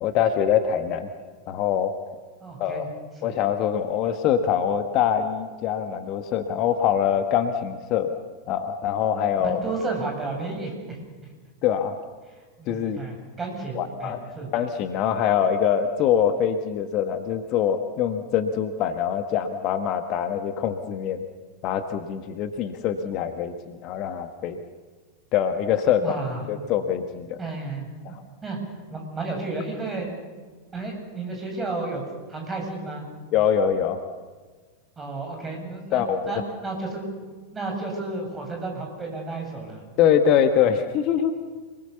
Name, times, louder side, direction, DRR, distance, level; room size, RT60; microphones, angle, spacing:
voice 1, 0.0-1.1 1.5-1.9 2.6-2.8 3.2-8.1 8.5-9.6 11.6-11.9 12.7-13.0 13.7-14.2 14.5-21.2 21.6-24.6 25.3-26.2 26.5-27.4 28.0-28.2 33.3-34.0 35.9-36.2 40.0-41.3, left 8 dB, 40° left, 8 dB, 1.5 m, -24 dB
voice 2, 2.4-2.9 3.2-3.3 9.4-11.0 12.3-14.5 26.0-26.5 27.4-28.2 28.4-28.6 28.9-30.1 30.7-32.0 32.3-33.0 35.0-36.0 36.3-37.1 37.5-39.8, right 3 dB, 15° right, 1 dB, 8.0 m, -32 dB
28.0 x 20.5 x 7.1 m, 1.4 s
figure-of-eight pair, 90°, 0 cm